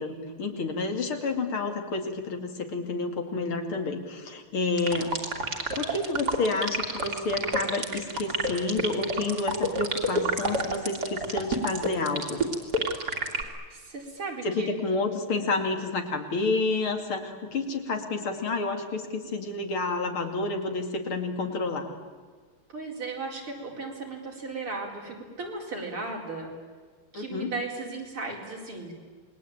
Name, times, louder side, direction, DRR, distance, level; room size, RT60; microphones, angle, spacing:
voice 1, 0.0-5.1 5.7-12.4 14.4-21.9 27.1-27.5, left 3 dB, 75° left, 5 dB, 3.4 m, -29 dB
sound 1, 4.8-13.4, right 2 dB, 50° right, 3.2 m, -27 dB
voice 2, 13.2-14.7 22.7-26.5 27.1-28.9, right 3 dB, 80° right, 0 dB, 5.5 m, -36 dB
28.0 x 21.5 x 8.9 m, 1.5 s
omnidirectional pair, 2.4 m